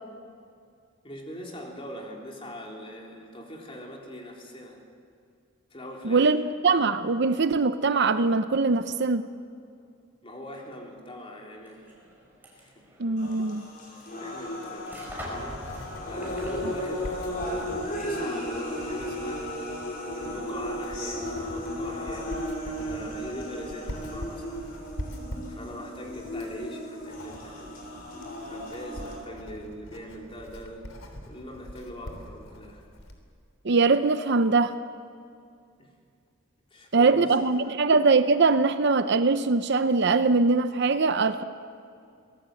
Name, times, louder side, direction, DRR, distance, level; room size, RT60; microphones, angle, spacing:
voice 1, 1.0-4.8 5.7-6.3 10.2-11.8 12.6-12.7 14.2-19.8 20.2-24.7 25.5-27.8 28.4-30.8 31.2-32.9 35.8-35.9 36.7-37.8, equal, 25° left, -1 dB, 3.7 m, -42 dB
voice 2, 6.0-9.3 13.0-13.6 33.6-34.7 36.9-41.4, right 4 dB, 55° right, 11 dB, 0.7 m, -22 dB
sound 1, 11.5-18.3, equal, 10° right, 5.1 m, -46 dB
sound 2, 13.2-29.2, equal, 45° left, 5.6 m, -35 dB
Writing, 14.6-33.2, equal, 90° left, 3.2 m, -43 dB
24.0 x 18.5 x 7.8 m, 2.4 s
head